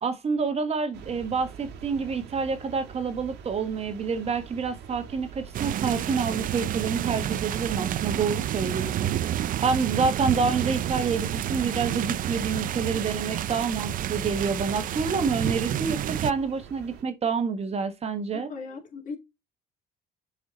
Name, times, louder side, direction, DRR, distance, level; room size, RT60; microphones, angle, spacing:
voice 1, 0.0-9.1 9.6-18.5, right 5 dB, 40° right, 1.6 m, -28 dB
sound 1, 0.9-17.0, right 7 dB, 85° right, 1.7 m, -45 dB
sound 2, 5.5-16.3, right 11 dB, 55° right, 0.6 m, -29 dB
voice 2, 18.3-19.2, left 4 dB, 50° left, 3.1 m, -38 dB
7.1 x 5.0 x 4.1 m
cardioid pair, 110°, 17 cm